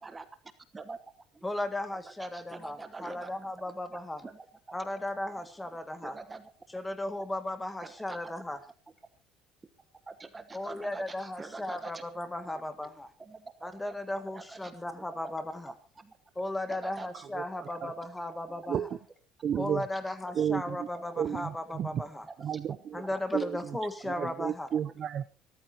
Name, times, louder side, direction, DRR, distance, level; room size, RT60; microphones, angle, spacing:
voice 1, 1.4-4.2 4.7-6.2 6.7-8.6 10.5-13.1 13.6-15.7 16.4-18.9 19.6-22.3 22.9-24.7, left 1 dB, 10° left, 9 dB, 2.0 m, -36 dB
voice 2, 2.2-3.3 4.2-4.5 6.0-6.5 7.8-8.3 10.1-12.0 12.5-12.6 13.2-13.7 14.3-14.7 15.2-15.3 16.0-16.1 16.7-17.1 18.5-18.6 20.1-20.2 23.0-23.2 24.7-24.9, right 3 dB, 15° right, 10 dB, 1.2 m, -45 dB
voice 3, 18.7-19.0 19.4-19.8 20.4-20.9 21.2-22.0 22.4-23.0 23.3-23.6 24.2-25.3, right 9 dB, 40° right, 14 dB, 0.7 m, -32 dB
26.5 x 14.0 x 2.9 m, 0.34 s
cardioid pair, 145°, 0 cm